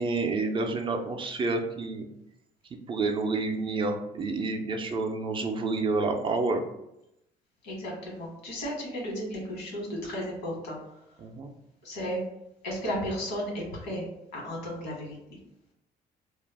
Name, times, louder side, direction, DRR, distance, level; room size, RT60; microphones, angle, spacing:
voice 1, 0.0-2.1 2.9-6.6 11.2-11.5, right 3 dB, 30° right, 4 dB, 0.4 m, -29 dB
voice 2, 7.6-10.8 11.8-12.3 12.6-14.1 14.3-15.2, equal, 90° left, -2 dB, 1.1 m, -34 dB
2.3 x 2.0 x 3.3 m, 0.84 s
cardioid pair, 110°, 17 cm